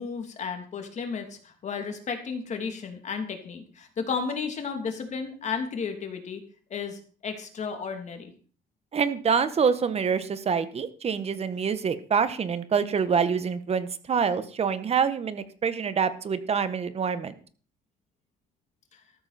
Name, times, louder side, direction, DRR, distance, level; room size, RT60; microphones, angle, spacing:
voice 1, 0.0-6.4 6.7-8.3 18.9-19.0, left 5 dB, 45° left, 5 dB, 3.2 m, -33 dB
voice 2, 8.9-17.3, right 6 dB, 40° right, 12 dB, 1.4 m, -26 dB
13.5 x 13.0 x 4.4 m, 0.42 s
cardioid pair, 110°, 17 cm